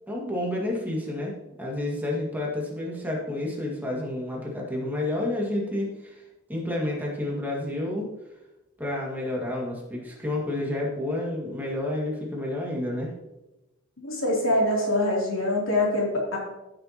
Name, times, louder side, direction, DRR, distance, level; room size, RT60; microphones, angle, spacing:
voice 1, 0.1-6.2 6.5-8.1 8.8-13.1, left 1 dB, 10° right, -3 dB, 1.9 m, -30 dB
voice 2, 14.0-16.4, left 1 dB, 75° left, -3 dB, 3.0 m, -24 dB
14.5 x 6.8 x 2.9 m, 0.99 s
head